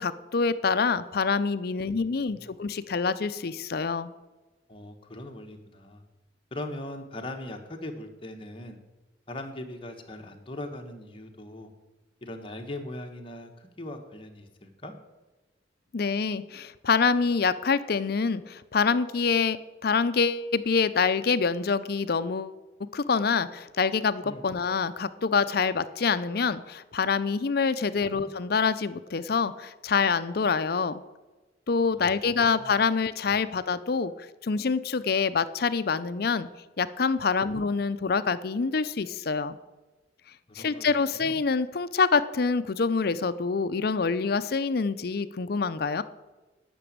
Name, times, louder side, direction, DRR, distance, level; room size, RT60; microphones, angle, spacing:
voice 1, 0.0-4.1 15.9-19.6 19.8-22.6 22.9-31.0 31.7-34.1 34.4-36.5 36.8-39.6 40.6-46.0, left 5 dB, 55° left, 13 dB, 0.5 m, -26 dB
voice 2, 1.8-2.6 4.7-6.0 6.5-8.8 9.3-11.7 12.2-14.9 24.2-24.4 27.9-28.3 31.9-32.7 37.4-37.7 40.5-41.4, left 1 dB, 30° left, 3 dB, 1.2 m, -40 dB
10.0 x 6.1 x 8.7 m, 1.2 s
head